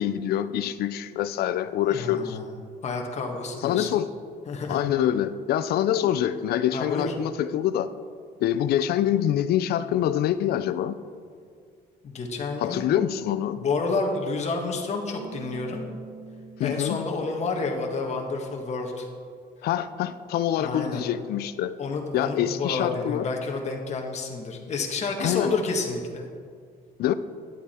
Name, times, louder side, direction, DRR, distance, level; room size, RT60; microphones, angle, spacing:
voice 1, 0.0-2.4 3.6-4.1 4.7-7.9 8.4-10.9 12.6-13.6 16.6-17.0 19.6-21.8 22.1-23.3 25.2-25.5 27.0-27.1, left 11 dB, 65° left, 13 dB, 0.5 m, -25 dB
voice 2, 1.9-2.5 2.8-3.9 4.5-4.8 6.7-7.1 12.0-13.0 13.6-15.8 16.6-19.1 20.5-21.0 21.8-26.3, left 3 dB, 40° left, 1 dB, 1.5 m, -29 dB
Bass guitar, 15.2-18.3, right 5 dB, 90° right, 1.1 m, -45 dB
11.5 x 8.3 x 4.4 m, 2.1 s
cardioid pair, 110°, 17 cm